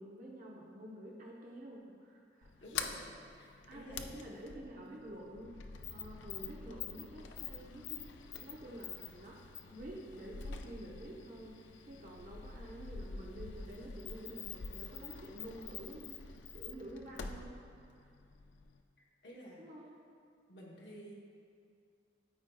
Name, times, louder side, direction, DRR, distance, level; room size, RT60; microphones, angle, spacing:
voice 1, 0.0-2.5 3.4-9.4 9.7-18.1 19.6-19.9, right 1 dB, 45° right, -3 dB, 0.8 m, -49 dB
Sliding door, 2.4-18.8, left 6 dB, 85° left, 0.4 m, -46 dB
voice 2, 2.6-3.1 3.3-4.2 19.2-19.7 20.5-21.1, equal, 65° left, -4 dB, 1.0 m, -51 dB
12.5 x 4.5 x 2.3 m, 2.4 s
head